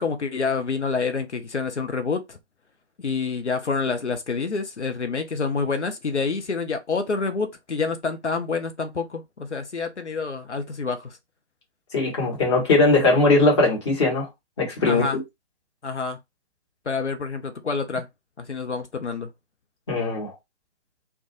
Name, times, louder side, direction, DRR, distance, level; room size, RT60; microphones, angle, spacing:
voice 1, 0.0-2.4 3.0-11.2 14.9-15.2 15.8-16.2 16.9-18.1 18.4-19.3, left 4 dB, 85° left, 0.6 m, -27 dB
voice 2, 11.9-14.3 14.6-15.1 19.9-20.3, left 3 dB, 25° left, 1.0 m, -20 dB
2.2 x 2.2 x 2.9 m
figure-of-eight pair, 140°, 34 cm